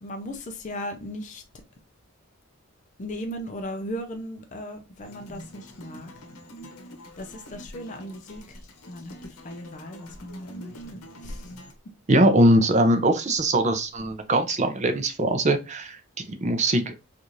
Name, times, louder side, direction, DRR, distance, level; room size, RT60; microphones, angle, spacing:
voice 1, 0.0-1.4 3.0-6.1 7.2-8.6 8.9-11.5, equal, 35° left, 0.4 m, -37 dB
sound 1, 5.0-11.7, equal, 85° left, 0.9 m, -46 dB
voice 2, 12.1-16.0 16.3-16.9, right 1 dB, 30° right, 0.5 m, -21 dB
4.6 x 2.5 x 2.6 m
head